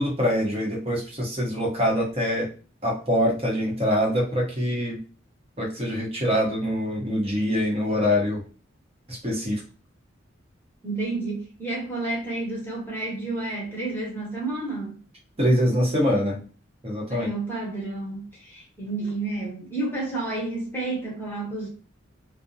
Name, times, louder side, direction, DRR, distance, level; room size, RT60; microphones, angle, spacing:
voice 1, 0.0-2.5 2.8-5.0 5.6-8.4 9.1-9.6 15.4-16.4 16.8-17.3, equal, 30° right, 0.9 m, -24 dB
voice 2, 10.8-14.9 17.1-21.7, right 2 dB, 10° left, 0.9 m, -30 dB
2.4 x 2.0 x 2.7 m
head